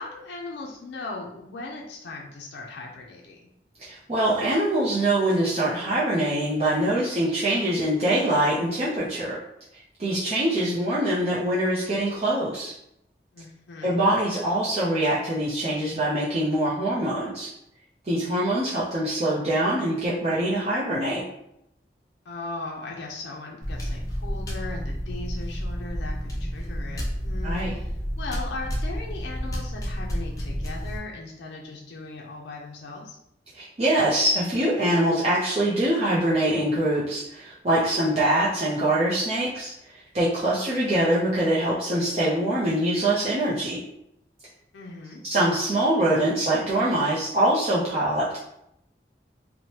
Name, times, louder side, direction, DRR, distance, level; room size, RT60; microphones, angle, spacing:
voice 1, 0.0-3.5 13.3-14.0 22.3-33.2 44.7-45.2, left 3 dB, 80° left, -1 dB, 0.4 m, -38 dB
voice 2, 3.8-9.4 10.0-12.7 13.8-17.5 18.0-21.2 27.4-27.7 33.5-43.8 45.2-48.4, right 1 dB, 35° right, -8 dB, 0.5 m, -24 dB
sound 1, 23.6-31.0, equal, 20° left, 0.4 m, -30 dB
3.0 x 2.0 x 2.8 m, 0.79 s
head